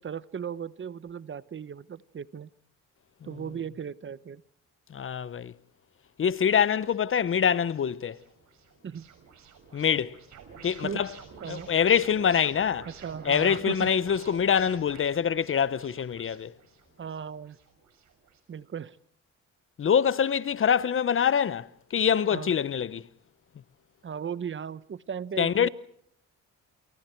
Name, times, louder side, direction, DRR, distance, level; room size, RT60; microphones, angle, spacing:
voice 1, 0.0-2.5 3.2-4.4 8.8-9.0 10.8-11.0 11.4-11.7 12.9-13.9 17.0-17.6 18.5-19.0 22.3-22.5 24.0-25.7, right 7 dB, 40° right, 1.0 m, -37 dB
voice 2, 4.9-5.5 6.2-8.2 9.7-10.1 10.6-11.1 11.5-12.9 13.2-16.5 19.8-23.0 25.4-25.7, left 7 dB, 45° left, 0.9 m, -25 dB
sound 1, 6.9-18.4, right 6 dB, 70° right, 6.7 m, -50 dB
28.5 x 28.5 x 4.6 m
cardioid pair, 90°, 30 cm